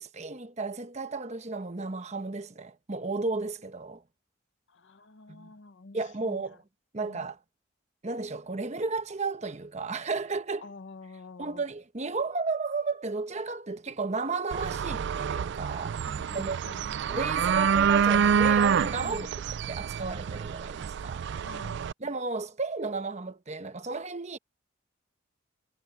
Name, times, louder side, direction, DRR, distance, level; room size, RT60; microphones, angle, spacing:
voice 1, 0.0-4.0 5.3-5.5 5.9-6.6 6.9-7.4 8.0-10.7 11.4-16.0 16.3-16.8 17.1-19.3 19.7-21.3 22.0-24.4, right 3 dB, 30° right, 1.0 m, -33 dB
voice 2, 4.7-6.4 7.0-7.3 10.6-11.6 16.0-16.8 19.0-19.4 21.4-21.8, left 3 dB, 55° left, 0.7 m, -47 dB
sound 1, 14.5-21.9, right 7 dB, 55° right, 0.3 m, -27 dB
head